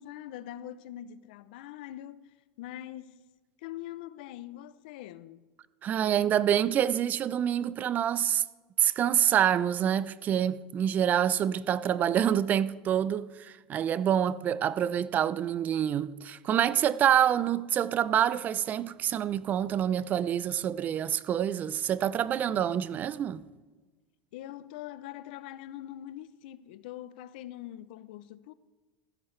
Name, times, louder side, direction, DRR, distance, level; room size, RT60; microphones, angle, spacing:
voice 1, 0.0-2.2 2.6-3.2 3.6-5.4 22.5-22.7 24.3-28.5, left 13 dB, 75° left, 0.5 m, -43 dB
voice 2, 5.8-8.4 8.8-23.4, right 10 dB, 35° right, 0.4 m, -27 dB
16.0 x 14.0 x 3.2 m
supercardioid pair, 125°, 5 cm